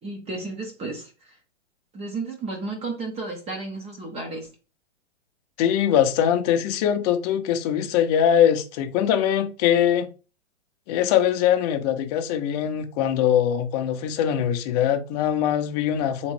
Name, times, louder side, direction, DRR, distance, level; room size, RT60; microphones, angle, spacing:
voice 1, 0.0-1.4 1.9-4.5, right 3 dB, 15° right, 0.8 m, -33 dB
voice 2, 5.6-10.1 10.9-16.3, left 9 dB, 35° left, 0.6 m, -22 dB
3.4 x 3.0 x 3.1 m
hypercardioid pair, 125°, 35 cm